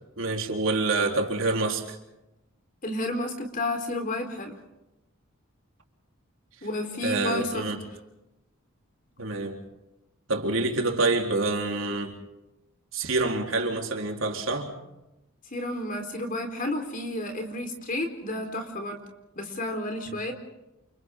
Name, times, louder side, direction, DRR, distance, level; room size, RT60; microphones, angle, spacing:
voice 1, 0.2-2.0 7.0-7.8 9.2-9.6 10.3-12.2 12.9-14.7, right 3 dB, 65° right, 4.0 m, -27 dB
voice 2, 2.8-4.5 6.6-7.7 15.5-19.0 19.4-20.3, left 1 dB, 40° left, 4.2 m, -31 dB
29.5 x 29.0 x 3.8 m
head